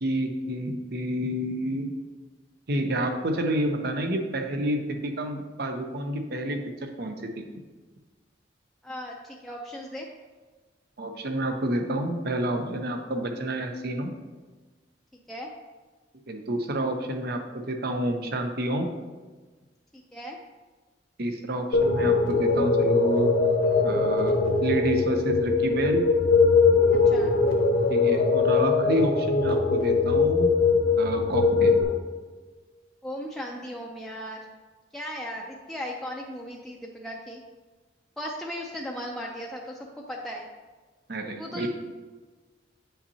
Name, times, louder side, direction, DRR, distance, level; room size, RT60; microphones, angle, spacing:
voice 1, 0.0-1.9 2.7-7.4 11.0-14.2 16.3-18.9 21.2-23.3 23.8-26.0 27.9-30.5 31.0-31.8 41.1-41.7, right 1 dB, 60° right, 5 dB, 0.8 m, -29 dB
voice 2, 8.8-10.1 15.3-15.5 20.1-20.4 27.1-27.3 33.0-34.4 34.9-37.4 38.2-39.8 40.1-40.5 41.4-41.7, equal, ahead, -3 dB, 0.5 m, -36 dB
sound 1, 21.7-31.8, left 4 dB, 85° left, 1.3 m, -21 dB
8.4 x 5.6 x 2.8 m, 1.3 s
head